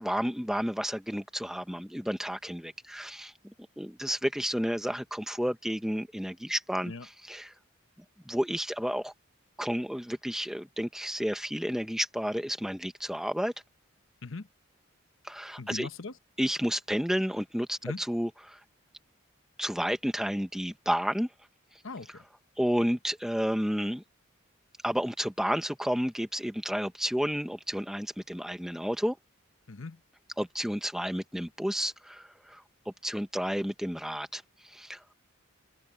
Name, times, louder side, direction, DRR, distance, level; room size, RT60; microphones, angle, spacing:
voice 1, 0.0-3.3 3.8-7.5 8.2-9.1 9.6-13.5 15.2-15.9 16.4-18.6 19.6-21.3 22.6-24.0 24.8-29.2 30.4-32.6 33.0-35.0, equal, ahead, 1.3 m, -31 dB
voice 2, 15.6-16.1 17.8-18.0 21.8-22.2 29.7-30.0, left 3 dB, 65° left, 1.1 m, -39 dB
head